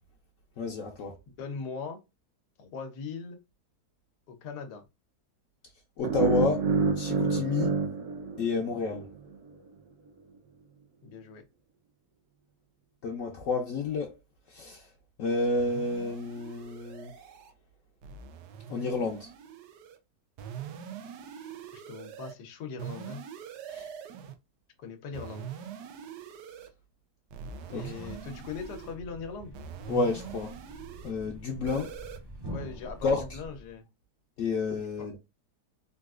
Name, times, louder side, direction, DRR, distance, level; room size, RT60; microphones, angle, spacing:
voice 1, 0.6-1.1 6.0-7.7 8.4-9.1 13.0-14.1 14.5-14.9 15.2-17.1 18.7-19.3 23.7-23.9 27.7-28.1 29.9-30.5 31.0-31.9 33.0-33.4 34.4-35.2, left 4 dB, 65° left, 0.9 m, -30 dB
voice 2, 1.4-2.0 2.6-3.4 4.3-4.8 11.0-11.4 21.7-23.2 24.8-25.5 27.7-29.5 32.5-33.9 35.0-35.1, left 5 dB, 90° left, 1.3 m, -40 dB
sound 1, 6.0-9.1, right 5 dB, 65° right, 1.0 m, -28 dB
sound 2, 15.6-17.5 18.0-20.0 20.4-22.3 22.8-24.4 25.1-26.7 27.3-29.0 29.5-31.1 31.7-32.2, right 8 dB, 85° right, 1.2 m, -43 dB
Thump thud, 27.5-33.8, right 1 dB, 40° right, 0.3 m, -45 dB
3.9 x 2.4 x 2.4 m
omnidirectional pair, 1.7 m